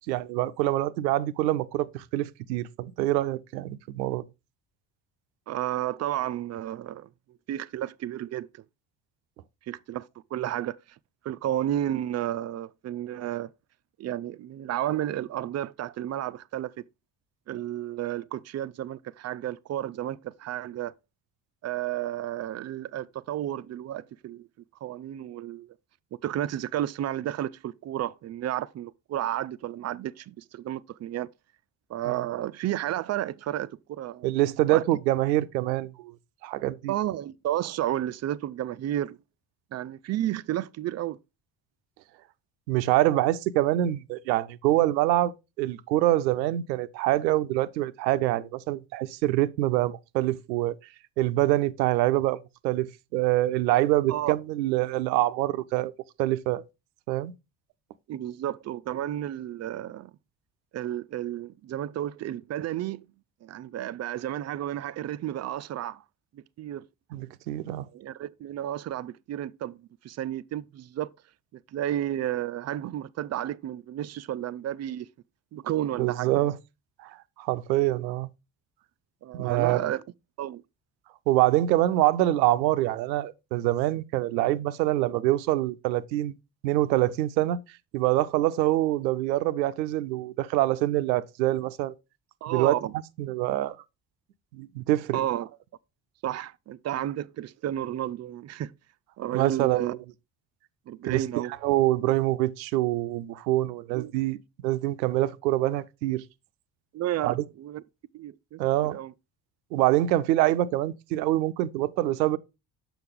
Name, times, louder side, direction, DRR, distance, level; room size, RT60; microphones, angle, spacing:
voice 1, 0.1-4.2 32.1-32.2 34.2-36.1 36.4-36.9 42.7-45.3 45.6-50.8 51.2-55.9 56.2-56.6 57.1-57.3 67.1-67.9 76.0-76.6 77.0-78.3 79.3-79.8 81.3-86.3 86.6-87.6 87.9-91.9 92.5-92.7 93.2-93.8 94.5-95.2 99.3-99.9 101.0-101.2 101.6-104.4 104.6-106.2 107.2-107.4 108.6-109.0 109.7-112.4, right 15 dB, 85° right, 0.5 m, -25 dB
voice 2, 5.5-7.1 7.5-8.6 9.7-10.8 11.2-13.5 14.0-16.8 17.5-20.9 21.6-24.5 24.8-25.7 26.2-31.3 31.9-34.3 34.7-34.8 36.9-39.2 39.7-41.2 54.1-54.3 58.1-60.1 60.7-63.1 63.4-66.0 66.3-66.8 67.9-71.1 71.7-75.1 75.5-76.5 79.2-80.0 80.4-80.6 92.4-92.9 95.1-95.5 96.2-98.7 99.2-100.0 100.9-101.5 103.9-104.1 106.9-107.8 108.1-108.6 108.9-109.1, right 12 dB, 35° right, 0.4 m, -32 dB
6.8 x 5.9 x 3.6 m
hypercardioid pair, 50°, 50 cm